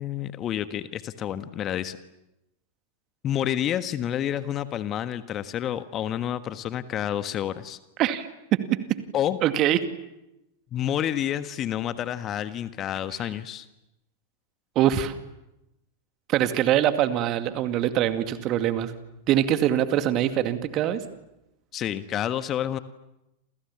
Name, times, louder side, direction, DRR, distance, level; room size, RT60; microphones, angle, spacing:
voice 1, 0.0-2.0 3.2-7.8 9.1-9.4 10.7-13.6 21.7-22.8, left 11 dB, 30° left, 12 dB, 1.5 m, -29 dB
voice 2, 8.0-8.6 9.4-9.8 14.8-15.2 16.3-18.9 19.3-21.0, right 11 dB, 35° right, 10 dB, 2.2 m, -23 dB
29.0 x 28.5 x 7.2 m, 0.92 s
figure-of-eight pair, 90°, 0 cm